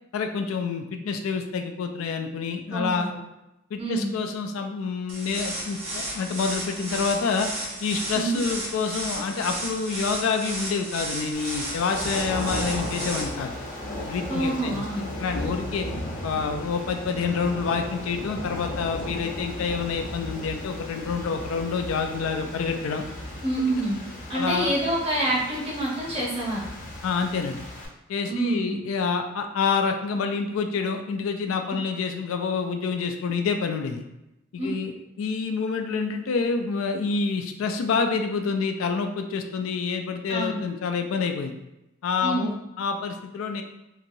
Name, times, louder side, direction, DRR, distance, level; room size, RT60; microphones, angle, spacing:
voice 1, 0.1-3.1 3.7-7.5 7.8-13.5 14.0-15.9 16.2-23.0 24.3-24.7 27.0-27.6 28.1-34.0 34.5-34.9 35.2-41.5 42.0-43.6, left 5 dB, 85° left, 5 dB, 0.3 m, -27 dB
voice 2, 3.8-4.1 8.1-8.4 14.3-15.0 23.4-24.0 24.3-26.7 28.3-28.8 34.6-34.7 40.3-40.6 42.2-42.5, right 1 dB, 30° right, -5 dB, 0.8 m, -27 dB
sound 1, 5.1-13.2, right 1 dB, 70° right, 1.0 m, -33 dB
sound 2, 11.3-27.9, left 1 dB, 40° left, 0.6 m, -36 dB
2.9 x 2.7 x 2.5 m, 0.91 s
head